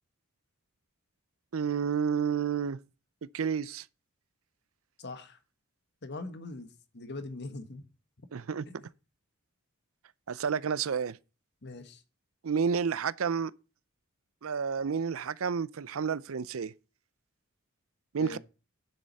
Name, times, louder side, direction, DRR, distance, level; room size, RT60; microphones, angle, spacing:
voice 1, 1.5-2.8 3.3-3.9 8.3-8.7 10.3-11.2 12.4-13.5 14.4-16.7 18.1-18.4, right 6 dB, 75° right, 0.5 m, -30 dB
voice 2, 5.0-5.4 6.0-6.7 6.9-7.8 8.7-8.8 11.6-12.0 18.2-18.4, left 2 dB, 55° left, 1.5 m, -41 dB
9.9 x 7.7 x 4.1 m
head